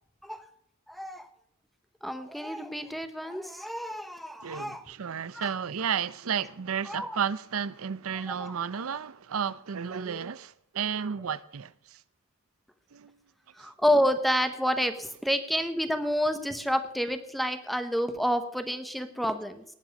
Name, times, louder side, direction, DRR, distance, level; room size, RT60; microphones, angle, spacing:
voice 1, 0.9-1.3 2.0-4.8 5.3-5.5 6.9-7.2 8.4-8.5 10.0-10.2 13.6-19.6, equal, ahead, 0.9 m, -29 dB
voice 2, 4.4-12.0 12.9-13.2 13.6-13.7, right 7 dB, 75° right, 0.6 m, -32 dB
18.5 x 7.5 x 5.3 m
head